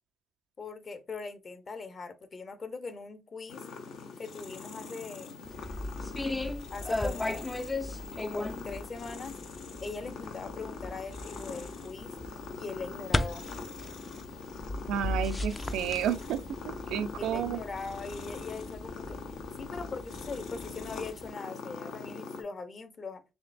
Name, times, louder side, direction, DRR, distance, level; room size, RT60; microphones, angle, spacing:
voice 1, 0.6-3.6 4.2-5.4 6.7-7.5 8.2-9.4 9.8-12.1 12.5-13.5 17.2-19.2 19.6-23.2, left 4 dB, 40° left, 0.7 m, -41 dB
sound 1, 3.5-22.4, left 4 dB, 80° left, 0.7 m, -43 dB
sound 2, 5.5-21.3, left 2 dB, 20° left, 0.3 m, -37 dB
voice 2, 14.9-17.6, right 9 dB, 85° right, 0.4 m, -31 dB
3.6 x 3.3 x 2.4 m
cardioid pair, 90°, 0 cm